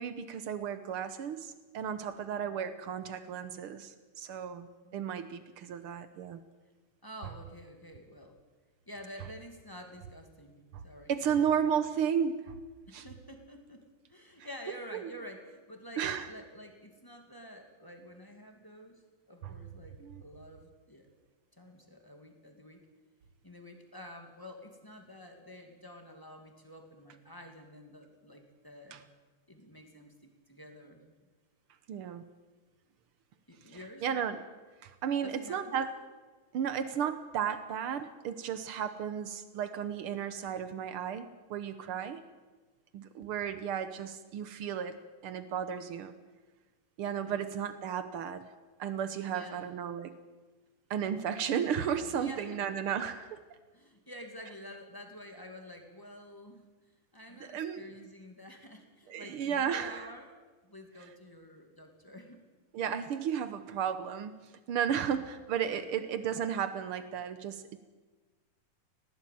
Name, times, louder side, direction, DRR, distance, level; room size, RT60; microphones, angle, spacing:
voice 1, 0.0-6.4 10.7-10.8 11.1-12.5 12.9-13.0 14.9-15.1 16.0-16.3 19.4-19.5 20.0-20.2 28.9-29.0 31.9-32.2 34.0-34.4 34.8-35.9 36.5-42.2 42.9-45.0 45.2-46.1 47.0-48.5 48.8-50.1 50.9-53.4 57.4-57.8 59.1-60.0 62.7-64.4 64.7-67.8, right 8 dB, 80° right, 11 dB, 1.2 m, -34 dB
voice 2, 7.0-8.4 8.9-11.1 12.9-21.1 21.6-22.8 23.4-29.1 29.5-31.1 33.5-34.2 35.2-36.0 47.2-47.5 49.3-49.7 52.1-52.6 53.7-56.6 57.1-62.4 65.0-65.3 65.7-65.9, equal, 10° left, 3 dB, 1.8 m, -49 dB
19.0 x 15.0 x 9.3 m, 1.3 s
omnidirectional pair, 3.8 m